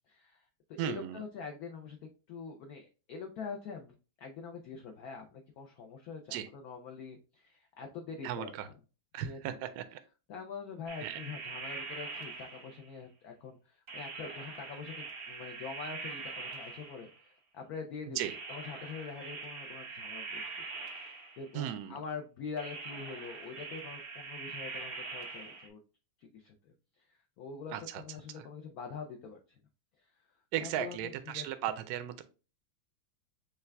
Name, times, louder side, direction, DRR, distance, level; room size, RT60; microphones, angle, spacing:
voice 1, 0.1-2.0 2.3-8.7 9.2-9.6 10.3-20.4 20.9-25.8 26.2-29.4 30.0-30.2 30.6-31.5, left 5 dB, 75° left, 4 dB, 0.8 m, -44 dB
voice 2, 0.8-1.2 6.3-6.5 8.2-8.7 9.1-10.0 11.0-11.2 18.2-18.3 21.5-22.0 27.7-28.0 30.5-32.2, right 11 dB, 75° right, 9 dB, 0.8 m, -36 dB
sound 1, 10.9-13.0 13.9-17.3 18.2-21.6 22.6-25.7, right 4 dB, 50° right, 0.7 m, -43 dB
5.5 x 2.4 x 3.3 m, 0.33 s
omnidirectional pair, 2.2 m